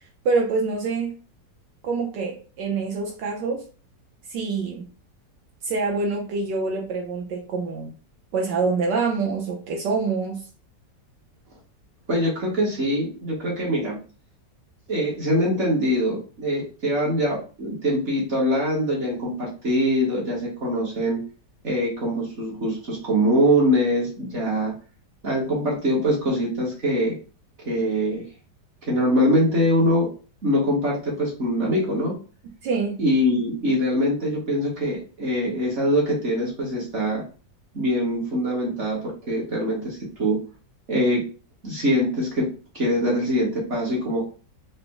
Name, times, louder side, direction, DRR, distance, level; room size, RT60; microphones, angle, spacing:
voice 1, 0.2-1.1 1.8-3.6 4.3-4.9 5.6-7.9 8.3-10.4 32.6-33.0, right 4 dB, 75° right, 0 dB, 1.3 m, -25 dB
voice 2, 12.1-14.0 14.9-21.2 21.6-24.7 25.2-27.1 27.6-28.2 28.9-30.1 30.4-32.1 33.0-37.2 37.7-39.0 39.3-40.4 40.9-41.2 41.6-42.5 42.7-44.3, equal, 45° right, -4 dB, 1.2 m, -23 dB
4.0 x 2.0 x 3.4 m, 0.37 s
omnidirectional pair, 2.0 m